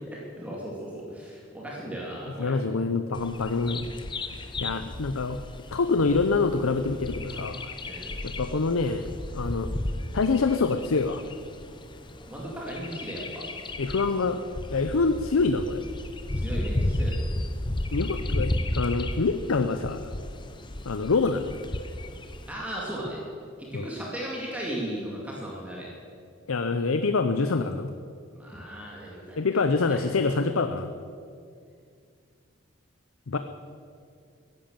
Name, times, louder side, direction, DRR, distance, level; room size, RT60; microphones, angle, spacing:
voice 1, 0.1-2.5 7.9-8.1 12.3-13.4 16.3-17.1 22.5-23.2 23.6-25.9 28.3-30.0, right 1 dB, 5° right, -4 dB, 2.4 m, -36 dB
voice 2, 2.4-3.8 4.6-5.4 5.7-7.7 8.2-9.1 9.3-9.7 10.1-11.2 13.8-14.4 14.7-15.8 17.9-20.0 20.9-21.6 23.7-23.9 26.5-27.9 29.4-30.9 33.3-33.4, left 4 dB, 90° left, 9 dB, 0.7 m, -25 dB
Bird vocalization bird call bird song, 3.1-22.5, left 1 dB, 25° left, 0.8 m, -34 dB
15.5 x 11.0 x 7.3 m, 2.3 s
head